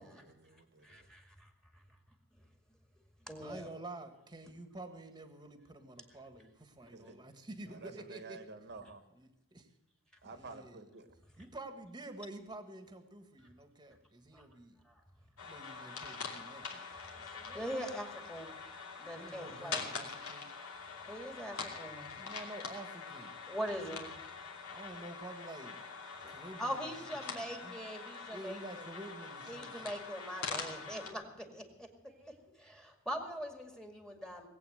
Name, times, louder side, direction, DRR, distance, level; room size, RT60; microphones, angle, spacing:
voice 1, 0.0-1.1 6.9-7.2 7.7-9.0 10.2-11.1, right 3 dB, 50° right, 9 dB, 1.4 m, -51 dB
voice 2, 0.8-1.5 3.3-3.7 14.3-14.5 14.9-15.0 17.1-18.5 19.0-19.9 21.1-22.1 23.5-24.1 26.6-28.8 29.5-34.5, equal, 5° left, 5 dB, 2.1 m, -42 dB
voice 3, 3.4-8.4 9.1-9.7 10.3-10.9 11.4-14.8 15.4-16.8 19.2-20.5 22.1-23.3 24.7-25.8 26.3-27.8 28.3-30.0, right 2 dB, 20° right, 8 dB, 1.7 m, -49 dB
sound 1, 15.4-31.1, left 5 dB, 70° left, 2.8 m, -44 dB
19.0 x 8.6 x 7.9 m, 0.88 s
head